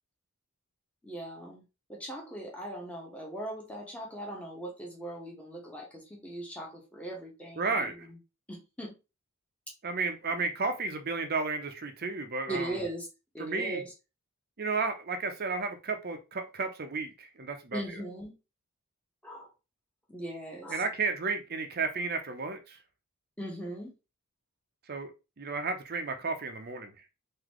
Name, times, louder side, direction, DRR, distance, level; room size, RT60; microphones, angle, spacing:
voice 1, 1.0-1.6 1.9-8.2 8.5-9.0 10.3-10.4 12.5-13.1 13.3-13.9 17.7-18.4 19.2-19.5 20.1-20.8 23.4-23.9, right 1 dB, 5° left, -2 dB, 1.1 m, -39 dB
voice 2, 7.6-7.9 9.8-12.7 13.4-13.8 14.6-17.8 20.7-22.8 24.9-25.1 25.4-26.9, right 4 dB, 45° right, 7 dB, 0.6 m, -32 dB
3.9 x 2.7 x 3.0 m, 0.29 s
head